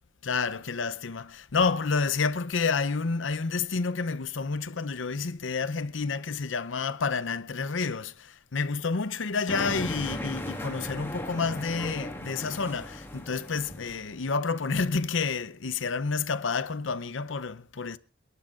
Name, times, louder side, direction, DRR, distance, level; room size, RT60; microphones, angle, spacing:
voice 1, 0.2-18.0, left 4 dB, 85° left, 0.7 m, -29 dB
sound 1, 9.5-14.3, left 1 dB, 10° left, 1.6 m, -37 dB
28.5 x 12.0 x 2.5 m
head